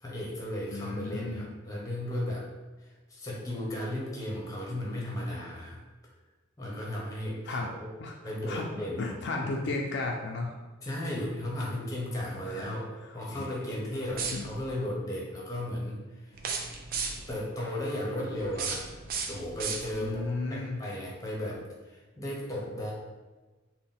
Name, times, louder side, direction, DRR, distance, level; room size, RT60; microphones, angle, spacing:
voice 1, 0.0-2.5 2.8-5.8 6.6-7.8 8.2-9.0 9.4-9.5 10.8-16.4 17.3-19.0 19.3-22.9, left 1 dB, 15° left, -3 dB, 0.7 m, -35 dB
voice 2, 0.7-1.5 7.5-7.7 8.0-8.1 8.5-8.7 9.0-10.5 11.1-11.3 12.4-12.7 13.3-13.5 14.3-14.5 20.0-20.8, left 3 dB, 55° left, 1 dB, 0.3 m, -34 dB
sound 1, 14.1-14.7 16.3-17.4 18.4-20.2, right 5 dB, 45° right, 0.4 m, -35 dB
3.9 x 2.1 x 3.6 m, 1.2 s
head